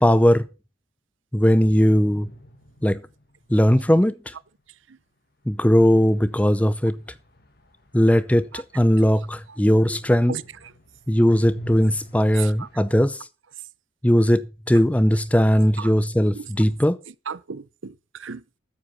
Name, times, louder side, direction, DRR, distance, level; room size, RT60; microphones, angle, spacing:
voice 1, 0.0-0.5 1.3-2.3 2.8-3.0 3.5-4.1 5.5-6.9 7.9-10.3 11.1-13.2 14.0-17.0, equal, 5° left, 0.6 m, -18 dB
sound 1, 1.8-3.5 5.7-9.5 9.8-12.8, equal, 50° left, 2.2 m, -42 dB
voice 2, 12.3-12.7 15.8-15.9 16.3-16.5 17.3-18.6, right 6 dB, 75° right, 0.7 m, -35 dB
13.5 x 9.5 x 4.2 m
head